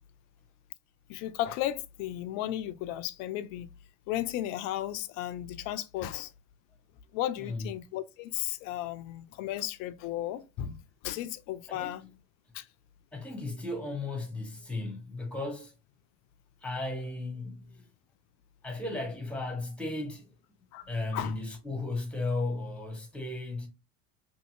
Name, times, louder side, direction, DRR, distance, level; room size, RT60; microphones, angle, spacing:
voice 1, 1.1-3.7 4.1-6.3 7.1-12.0 12.5-12.7 20.7-21.4, left 13 dB, 45° left, 0.4 m, -35 dB
voice 2, 7.4-7.7 11.7-12.1 13.1-15.7 16.6-17.9 18.6-20.3 20.8-23.7, left 2 dB, 5° left, 0.9 m, -35 dB
2.7 x 2.7 x 2.5 m
hypercardioid pair, 75°, 40 cm